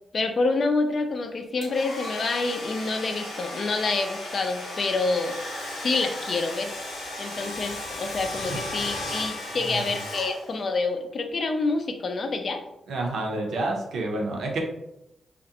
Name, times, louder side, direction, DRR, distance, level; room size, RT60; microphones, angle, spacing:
voice 1, 0.1-5.4 5.8-6.7 7.2-12.6, left 3 dB, 55° left, 6 dB, 0.4 m, -27 dB
Domestic sounds home sounds, 1.6-10.8, left 1 dB, 90° left, 0.8 m, -35 dB
voice 2, 12.9-14.6, right 2 dB, 80° right, 0 dB, 0.6 m, -29 dB
2.4 x 2.1 x 2.7 m, 0.84 s
cardioid pair, 70°, 0 cm